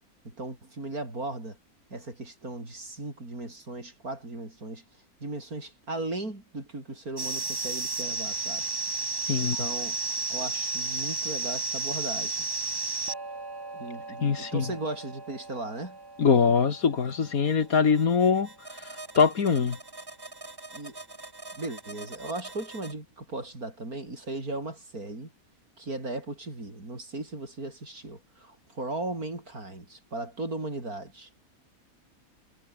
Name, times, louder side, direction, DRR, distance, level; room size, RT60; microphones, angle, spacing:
voice 1, 0.2-1.6 1.9-4.8 5.2-8.7 9.4-10.0 10.3-12.4 13.7-16.0 20.7-21.0 21.5-25.3 25.8-31.3, right 2 dB, 80° right, 6.8 m, -37 dB
SHe is not just a pretty face, 7.2-22.9, right 3 dB, 20° right, 1.1 m, -35 dB
voice 2, 14.2-14.6 16.2-18.5 18.8-19.8, left 6 dB, 75° left, 2.2 m, -23 dB
omnidirectional pair, 1.5 m